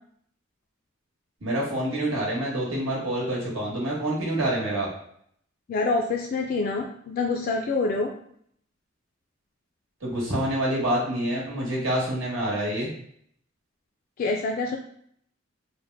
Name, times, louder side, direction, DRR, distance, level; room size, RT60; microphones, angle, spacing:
voice 1, 1.4-4.9 10.0-12.9, right 1 dB, 85° right, -4 dB, 1.2 m, -27 dB
voice 2, 5.7-8.1 14.2-14.8, left 3 dB, 45° left, 1 dB, 0.3 m, -26 dB
3.1 x 2.0 x 3.4 m, 0.66 s
head